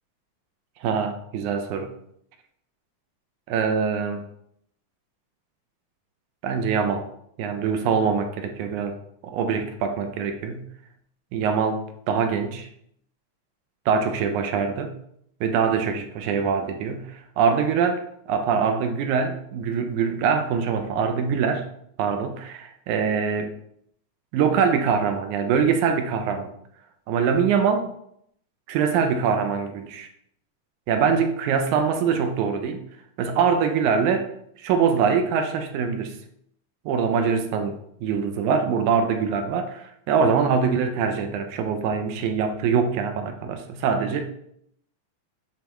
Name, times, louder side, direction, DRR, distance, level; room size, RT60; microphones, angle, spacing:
voice 1, 0.8-1.9 3.5-4.2 6.4-7.0 7.4-9.0 9.2-10.6 11.3-12.7 13.9-15.0 15.4-21.7 22.0-23.5 24.3-26.5 27.1-27.9 28.7-30.1 30.9-32.8 33.2-34.3 34.6-36.1 36.9-44.2, right 6 dB, 80° right, 6 dB, 2.1 m, -23 dB
9.4 x 3.4 x 3.0 m, 0.71 s
omnidirectional pair, 3.4 m